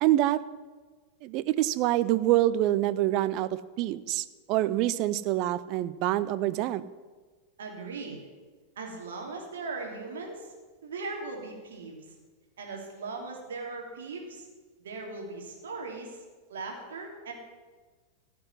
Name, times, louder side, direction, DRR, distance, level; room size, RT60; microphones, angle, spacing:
voice 1, 0.0-0.4 1.2-3.5 3.8-6.8, right 14 dB, 40° right, 15 dB, 0.6 m, -26 dB
voice 2, 7.6-8.3 8.8-10.5 10.8-12.0 12.6-14.5 14.8-16.2 16.5-17.3, right 3 dB, 65° right, 1 dB, 3.0 m, -38 dB
15.5 x 6.1 x 9.8 m, 1.4 s
figure-of-eight pair, 90°, 0 cm